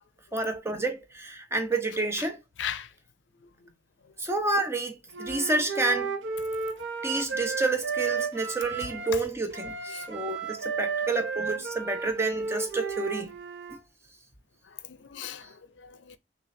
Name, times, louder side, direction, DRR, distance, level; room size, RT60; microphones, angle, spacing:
voice 1, 0.3-2.4 4.2-6.2 7.0-13.3 13.7-13.8, right 2 dB, 15° right, 0.7 m, -29 dB
voice 2, 2.6-2.9 3.4-3.7 4.0-4.1 5.3-5.4 6.7-6.8 9.1-9.2 9.9-10.2 11.5-11.7 14.6-16.2, left 9 dB, 80° left, 0.5 m, -40 dB
Wind instrument woodwind instrument, 5.1-9.2 9.5-13.8, right 5 dB, 80° right, 0.7 m, -33 dB
6.1 x 2.4 x 2.6 m
head